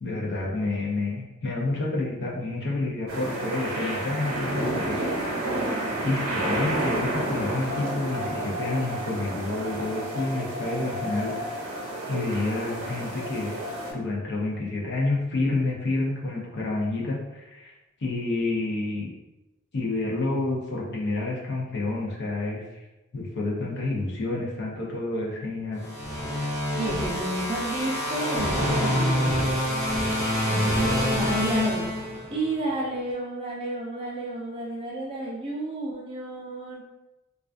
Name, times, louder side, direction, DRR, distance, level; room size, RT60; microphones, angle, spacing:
voice 1, 0.0-5.0 6.0-11.3 12.1-13.6 13.9-17.7 18.0-19.1 19.7-22.8 23.1-25.9, left 2 dB, 55° left, -3 dB, 0.6 m, -29 dB
sound 1, 3.1-13.9, right 1 dB, 80° right, 0.7 m, -30 dB
sound 2, 25.8-32.5, equal, 15° left, 0.8 m, -26 dB
voice 2, 26.7-29.5 30.5-31.9 32.3-36.8, right 1 dB, 25° right, -3 dB, 0.5 m, -31 dB
2.3 x 2.3 x 2.4 m, 1.0 s
head